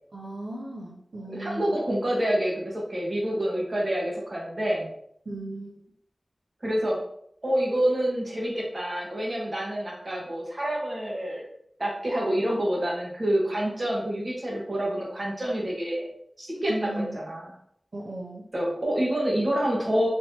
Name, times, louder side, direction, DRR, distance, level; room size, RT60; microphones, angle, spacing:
voice 1, 0.1-1.8 5.3-5.8 16.7-17.2 17.9-18.4, right 1 dB, 80° right, -3 dB, 0.5 m, -35 dB
voice 2, 1.3-4.9 6.6-7.0 7.4-11.4 11.8-16.1 16.4-16.9 17.1-17.4 18.5-20.1, right 1 dB, 45° right, -3 dB, 1.2 m, -27 dB
3.4 x 2.9 x 2.8 m, 0.70 s
wide cardioid pair, 55°, 0 cm